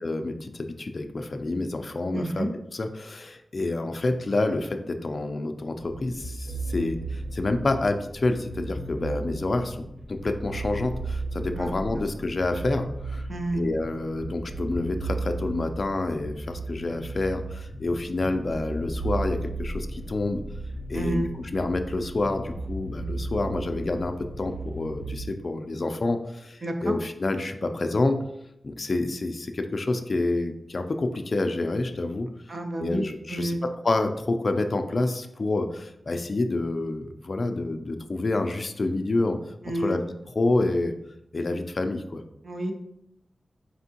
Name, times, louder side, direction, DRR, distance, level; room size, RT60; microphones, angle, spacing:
voice 1, 0.0-2.5 2.7-9.8 10.1-13.3 13.5-20.4 20.9-28.2 28.6-32.3 32.8-39.4 39.7-40.0 40.4-40.9 41.3-42.2, left 2 dB, 45° left, 6 dB, 0.3 m, -28 dB
voice 2, 2.1-2.5 11.6-11.7 13.3-13.6 20.9-21.3 26.6-27.0 32.5-33.6 39.7-40.0 42.4-42.7, right 1 dB, 50° right, 4 dB, 0.4 m, -29 dB
sound 1, 5.8-25.2, right 2 dB, 35° right, 0.8 m, -35 dB
4.4 x 3.4 x 2.8 m, 0.80 s
wide cardioid pair, 115°, 0 cm